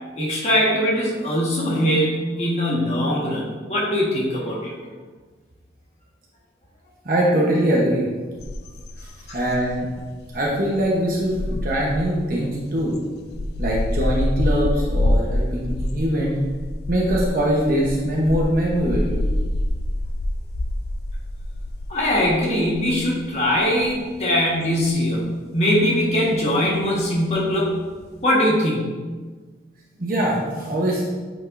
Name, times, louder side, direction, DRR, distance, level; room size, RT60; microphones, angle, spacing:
voice 1, 0.2-4.7 9.3-9.4 21.9-27.7 28.2-28.9, equal, 35° left, -4 dB, 1.5 m, -21 dB
voice 2, 7.0-8.1 9.0-9.1 9.3-9.9 10.3-13.0 13.6-16.4 16.9-19.2 30.0-31.1, equal, 50° right, -4 dB, 1.0 m, -22 dB
sound 1, 8.4-28.2, left 1 dB, 60° left, 0.4 m, -27 dB
8.9 x 5.2 x 2.6 m, 1.4 s
head